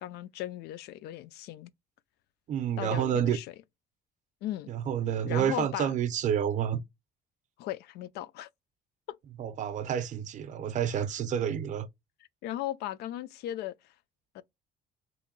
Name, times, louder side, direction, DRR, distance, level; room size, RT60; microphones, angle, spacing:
voice 1, 0.0-1.7 2.8-3.5 4.4-4.7 5.3-5.9 7.6-8.5 9.1-9.2 12.4-13.7 14.3-14.4, left 13 dB, 75° left, 0.4 m, -37 dB
voice 2, 2.5-3.4 4.7-6.8 9.4-11.9, right 9 dB, 45° right, 0.5 m, -29 dB
3.0 x 2.5 x 3.7 m
cardioid pair, 150°, 17 cm